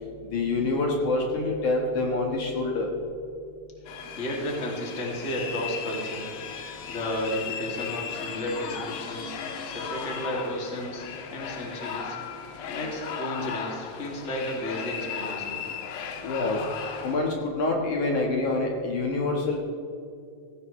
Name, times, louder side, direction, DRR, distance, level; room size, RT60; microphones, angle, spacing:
voice 1, 0.3-2.9 16.2-16.6 17.0-19.6, left 2 dB, 60° left, 0 dB, 2.8 m, -26 dB
sound 1, 3.9-17.2, left 7 dB, 75° left, 2.9 m, -36 dB
voice 2, 3.9-6.3 6.9-9.4 9.6-12.2 12.7-15.6, left 1 dB, 20° left, -2 dB, 2.4 m, -33 dB
17.0 x 16.5 x 3.2 m, 2.4 s
omnidirectional pair, 4.1 m